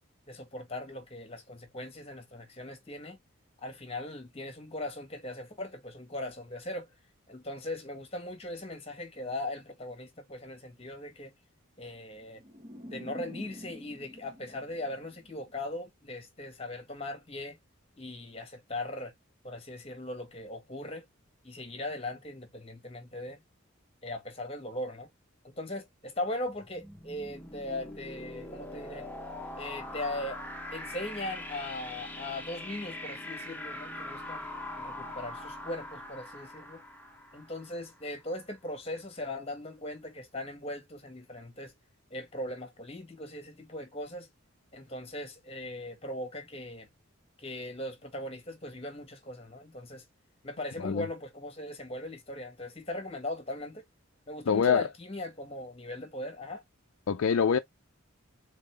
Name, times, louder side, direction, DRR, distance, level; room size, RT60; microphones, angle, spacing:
voice 1, 0.3-3.2 3.6-6.9 7.3-11.3 11.8-12.4 12.9-17.6 18.0-19.1 19.4-21.0 21.4-23.4 24.0-25.1 25.4-29.1 29.6-30.4 30.7-34.5 34.8-36.8 37.3-41.7 42.1-44.3 44.7-46.9 47.4-50.0 50.4-53.8 54.3-56.6, left 1 dB, 30° left, 1.5 m, -39 dB
sound 1, 12.4-15.6, equal, 25° right, 1.2 m, -47 dB
sound 2, 26.4-38.1, left 1 dB, 10° left, 1.1 m, -42 dB
voice 2, 54.5-54.8 57.1-57.6, left 7 dB, 75° left, 0.4 m, -25 dB
3.9 x 3.8 x 3.3 m
head